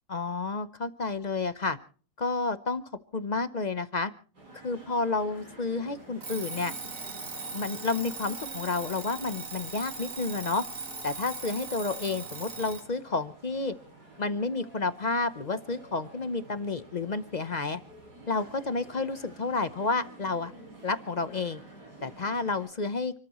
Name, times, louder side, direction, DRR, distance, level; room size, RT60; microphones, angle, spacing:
voice 1, 0.1-1.8 2.2-2.8 3.1-4.1 4.6-6.7 7.5-10.6 11.0-13.7 14.2-17.8 18.3-20.5 20.8-21.6 22.0-23.1, left 3 dB, 45° left, 12 dB, 0.5 m, -30 dB
sound 1, 4.3-22.7, right 2 dB, 70° right, 7.6 m, -50 dB
Alarm, 6.2-12.9, right 4 dB, 50° right, 2.6 m, -39 dB
29.5 x 13.5 x 3.0 m, 0.41 s
omnidirectional pair, 1.9 m